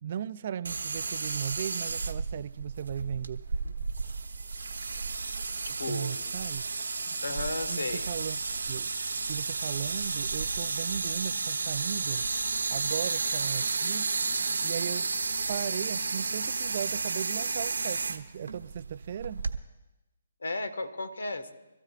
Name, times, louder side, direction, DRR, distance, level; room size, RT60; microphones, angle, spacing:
voice 1, 0.0-3.4 5.9-6.7 7.1-7.2 7.7-8.4 8.7-8.9 9.3-12.3 12.7-14.1 14.6-19.4, right 9 dB, 45° right, 0.4 m, -37 dB
sound 1, 0.6-19.6, right 4 dB, 80° right, 1.2 m, -32 dB
voice 2, 5.6-6.2 7.2-8.1 20.4-21.5, left 2 dB, 85° left, 1.5 m, -34 dB
25.5 x 14.0 x 2.5 m
hypercardioid pair, 150°, 0 cm